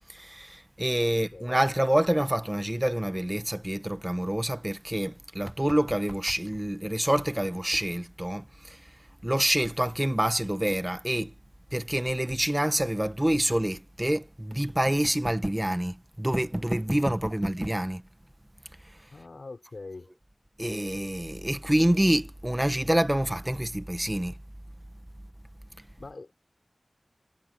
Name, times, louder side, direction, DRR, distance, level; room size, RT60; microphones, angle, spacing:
voice 1, 0.1-8.8 9.2-11.3 11.7-18.0 20.6-24.3, right 1 dB, 15° right, 1.1 m, -27 dB
voice 2, 1.1-1.5 17.3-17.4 19.1-20.1 26.0-26.3, left 3 dB, 80° left, 6.2 m, -43 dB
wide cardioid pair, 55°, 0 cm